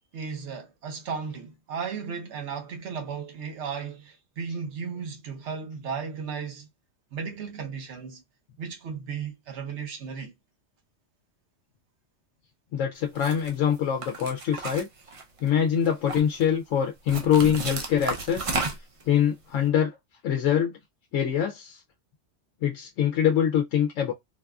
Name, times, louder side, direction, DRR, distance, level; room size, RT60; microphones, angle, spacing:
voice 1, 0.1-6.7 7.1-8.2 8.6-10.3, right 6 dB, 70° right, 1.1 m, -35 dB
voice 2, 12.7-14.9 15.4-18.5 19.1-20.0 20.2-20.7 21.1-21.8 22.6-24.1, left 9 dB, 90° left, 0.9 m, -24 dB
sound 1, 13.1-13.5 14.0-15.5 15.8-16.4 17.1-19.0, right 3 dB, 40° right, 0.5 m, -32 dB
3.9 x 2.4 x 2.3 m
omnidirectional pair, 1.3 m